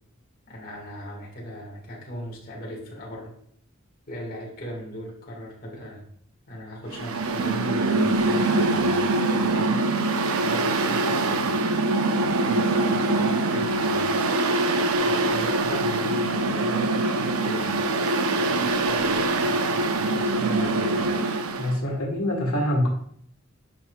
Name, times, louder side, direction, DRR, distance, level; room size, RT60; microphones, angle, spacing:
voice 1, 0.5-3.3 4.1-6.0 6.5-10.0 10.4-11.5 12.4-14.1 15.0-17.7 18.4-21.0 21.6-22.0, equal, 40° left, -3 dB, 1.8 m, -38 dB
Mechanical fan, 6.9-21.7, right 2 dB, 80° right, 0.7 m, -23 dB
voice 2, 21.4-22.9, left 1 dB, 85° left, -1 dB, 1.7 m, -25 dB
9.6 x 5.3 x 2.3 m, 0.65 s
head